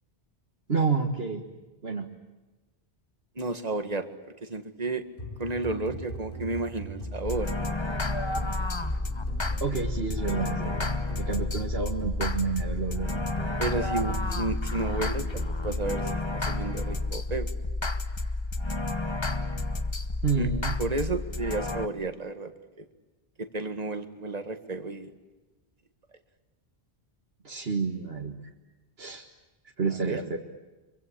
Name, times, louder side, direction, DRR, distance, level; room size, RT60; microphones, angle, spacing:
voice 1, 0.7-1.4 1.8-2.1 9.6-10.9 11.2-13.1 20.2-20.8 27.4-28.3 29.0-29.2 29.8-30.4, right 5 dB, 65° right, 1 dB, 2.1 m, -29 dB
voice 2, 3.4-4.1 4.4-5.0 5.4-7.5 13.6-17.5 20.3-20.5 20.8-22.5 23.4-25.1 30.0-30.2, right 2 dB, 35° right, 8 dB, 2.0 m, -32 dB
sound 1, 5.2-16.2, right 1 dB, 50° left, 5.7 m, -40 dB
sound 2, 7.3-21.9, left 2 dB, 25° left, 1.1 m, -31 dB
26.0 x 24.0 x 8.6 m, 1.2 s
omnidirectional pair, 1.1 m